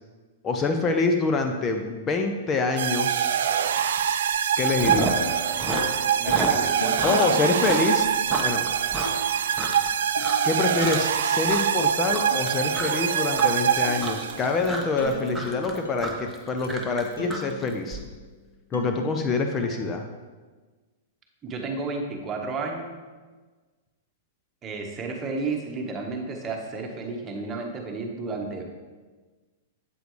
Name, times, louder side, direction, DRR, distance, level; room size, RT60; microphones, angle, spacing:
voice 1, 0.4-3.4 4.6-5.2 7.0-8.1 8.4-8.7 10.4-18.0 18.7-20.0, left 3 dB, 25° left, 5 dB, 0.7 m, -26 dB
sound 1, 2.8-14.6, right 8 dB, 70° right, 0.4 m, -24 dB
Chewing mastication, 3.8-4.0 4.3-5.3 5.5-9.9 10.2-10.5 10.8-11.2 11.5-18.0, right 2 dB, 5° right, 1.1 m, -32 dB
sound 2, 4.8-18.2 18.7-19.9, left 2 dB, 90° left, 0.9 m, -38 dB
voice 2, 6.2-7.1 21.4-23.0 24.6-28.6, right 3 dB, 25° right, 1 dB, 1.3 m, -32 dB
8.0 x 8.0 x 3.2 m, 1.4 s
hypercardioid pair, 115°, 0 cm